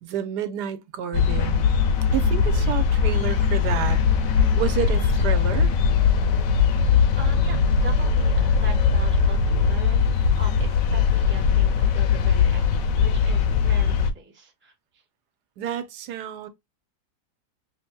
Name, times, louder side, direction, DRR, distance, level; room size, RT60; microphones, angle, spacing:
voice 1, 0.0-1.7 2.1-4.0 4.6-5.7 15.6-16.5, right 10 dB, 90° right, 1.3 m, -29 dB
sound 1, 1.1-14.1, left 6 dB, 65° left, 1.0 m, -20 dB
voice 2, 7.2-15.0, right 2 dB, 10° right, 0.5 m, -41 dB
5.8 x 2.7 x 2.2 m
omnidirectional pair, 1.7 m